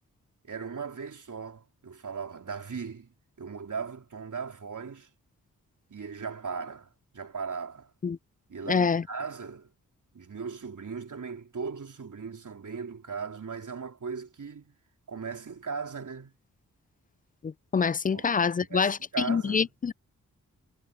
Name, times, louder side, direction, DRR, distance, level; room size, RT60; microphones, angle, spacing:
voice 1, 0.4-3.1 3.4-5.1 5.9-7.9 8.5-9.7 10.1-14.8 15.1-16.3 18.1-18.3 18.6-19.7, right 5 dB, 60° right, 3.7 m, -38 dB
voice 2, 8.7-9.0 17.4-19.0 19.3-19.9, left 6 dB, 25° left, 0.3 m, -26 dB
cardioid pair, 50°, 35 cm